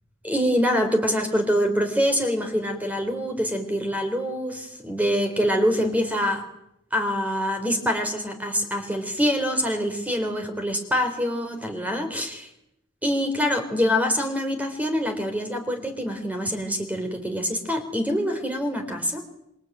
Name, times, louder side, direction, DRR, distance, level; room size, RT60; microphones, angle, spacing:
voice 1, 0.2-6.4 6.9-12.5 13.0-19.2, equal, 10° right, 5 dB, 3.8 m, -25 dB
27.0 x 24.0 x 9.2 m, 0.83 s
head